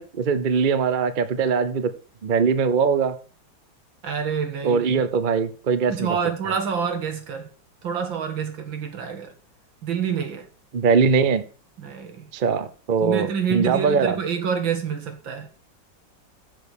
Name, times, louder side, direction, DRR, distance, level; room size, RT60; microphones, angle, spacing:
voice 1, 0.0-1.9 2.2-3.1 4.6-6.1 10.7-11.4 12.3-14.2, right 5 dB, 45° right, 0.6 m, -21 dB
voice 2, 4.0-5.0 5.9-7.5 7.8-9.3 9.8-10.5 11.8-12.3 13.0-15.5, right 7 dB, 85° right, 2.4 m, -27 dB
7.7 x 6.8 x 6.7 m
omnidirectional pair, 2.1 m